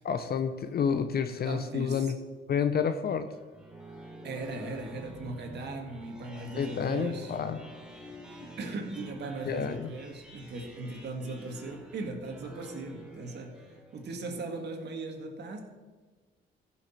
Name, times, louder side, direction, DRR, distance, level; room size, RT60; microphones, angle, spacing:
voice 1, 0.0-2.1 2.5-3.3 6.6-7.6 9.5-9.9, left 7 dB, 50° left, 9 dB, 0.7 m, -29 dB
voice 2, 1.4-2.1 4.2-7.3 8.6-15.6, right 2 dB, 60° right, 2 dB, 2.0 m, -38 dB
sound 1, 3.3-14.1, right 1 dB, 5° right, 1.9 m, -48 dB
15.0 x 6.3 x 4.5 m, 1.4 s
cardioid pair, 90°, 20 cm